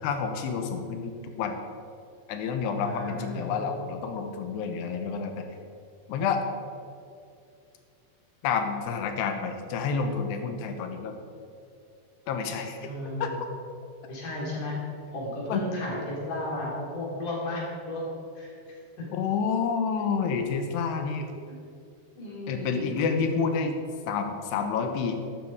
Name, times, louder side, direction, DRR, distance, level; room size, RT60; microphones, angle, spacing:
voice 1, 0.0-1.6 2.3-5.4 6.1-6.4 8.4-11.2 12.3-12.9 13.2-13.3 15.5-15.6 19.1-21.3 22.5-23.8 24.1-25.2, left 5 dB, 80° left, 5 dB, 3.1 m, -29 dB
voice 2, 2.8-3.7 12.8-13.4 14.1-14.7 15.1-18.1 18.3-19.1 21.5-21.6 22.2-22.8, left 1 dB, 50° left, -4 dB, 5.0 m, -34 dB
12.5 x 12.5 x 4.9 m, 2.5 s
omnidirectional pair, 4.8 m